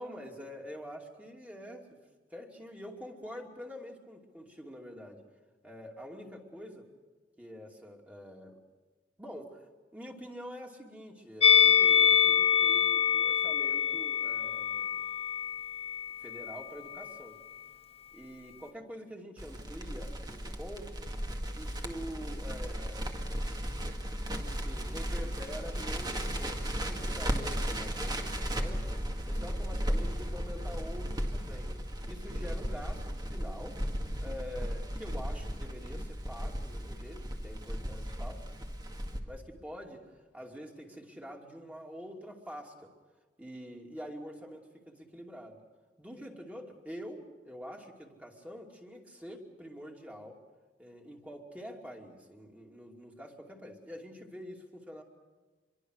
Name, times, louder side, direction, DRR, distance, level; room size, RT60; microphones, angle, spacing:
voice 1, 0.0-2.0 2.3-5.2 5.6-6.9 7.4-8.6 9.2-15.0 16.2-17.4 18.1-21.1 21.5-23.1 24.3-31.7 32.1-33.8 34.2-38.4 39.3-42.9 43.4-45.6 46.0-50.4 50.8-55.0, equal, 10° right, 1 dB, 2.6 m, -46 dB
Musical instrument, 11.4-16.6 16.9-17.1, left 8 dB, 35° left, 1.1 m, -25 dB
Crackle, 19.4-39.2, equal, 25° right, 1.9 m, -35 dB
25.5 x 23.0 x 6.5 m, 1.3 s
head